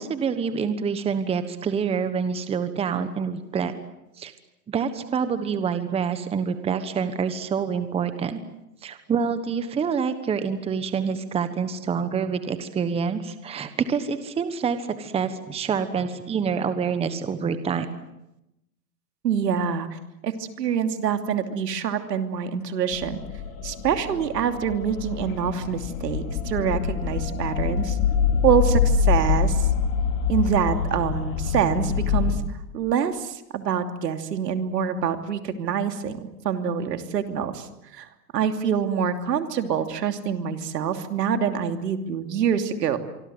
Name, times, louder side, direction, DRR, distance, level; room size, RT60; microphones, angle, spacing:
voice 1, 0.0-3.7 4.2-4.3 4.7-8.4 8.8-17.9, right 6 dB, 10° right, 11 dB, 1.3 m, -27 dB
voice 2, 19.2-23.2 23.6-28.0 28.4-29.7 30.3-32.4 32.7-37.7 37.9-38.1 38.3-43.0, right 8 dB, 75° right, 7 dB, 3.0 m, -25 dB
sound 1, 22.9-32.3, left 7 dB, 55° left, 4.1 m, -25 dB
25.0 x 25.0 x 7.9 m, 0.89 s
hypercardioid pair, 140°, 49 cm